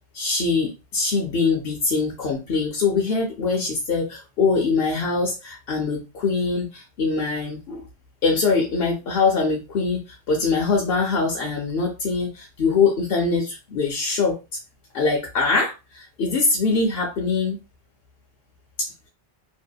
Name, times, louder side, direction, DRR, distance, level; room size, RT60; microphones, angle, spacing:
voice 1, 0.1-7.9 8.2-10.0 10.3-14.6 14.9-17.6 18.8-19.1, left 4 dB, 65° left, -1 dB, 0.8 m, -23 dB
2.7 x 2.0 x 2.2 m, 0.27 s
omnidirectional pair, 1.2 m